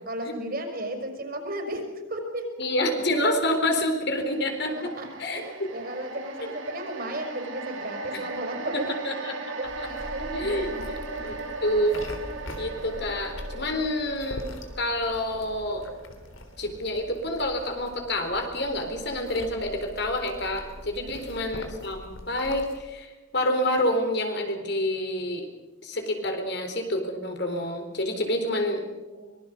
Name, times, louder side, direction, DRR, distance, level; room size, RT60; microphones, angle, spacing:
voice 1, 0.1-2.5 4.7-8.9 9.6-11.3 21.0-21.6 29.0-29.2, right 1 dB, 50° right, 4 dB, 5.4 m, -35 dB
voice 2, 2.6-4.9 5.2-5.7 6.4-6.5 8.1-8.2 8.7-9.3 9.8-9.9 10.3-10.7 11.2-11.4 11.6-12.1 12.6-14.5 14.8-15.8 16.6-25.5 25.8-28.8, left 1 dB, 55° left, 4 dB, 4.1 m, -28 dB
sound 1, 4.1-18.5 18.8-19.0, right 3 dB, 75° right, 4.1 m, -39 dB
sound 2, 9.6-22.8, left 1 dB, 80° left, 3.6 m, -42 dB
24.5 x 21.0 x 6.7 m, 1.1 s
head